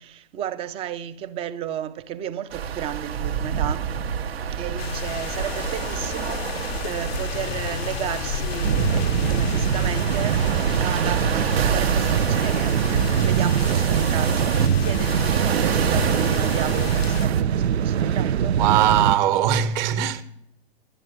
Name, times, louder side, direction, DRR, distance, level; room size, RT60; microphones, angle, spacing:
voice 1, 0.0-4.0 4.5-18.6, right 10 dB, 20° right, 0.5 m, -33 dB
sound 1, 2.5-17.4, right 8 dB, 75° right, 1.0 m, -28 dB
sound 2, 4.8-17.3, left 8 dB, 75° left, 0.6 m, -32 dB
sound 3, 8.6-19.1, right 8 dB, 90° right, 0.5 m, -23 dB
voice 2, 18.5-20.2, right 10 dB, 45° right, 1.2 m, -20 dB
11.0 x 7.9 x 8.5 m
hypercardioid pair, 125°, 31 cm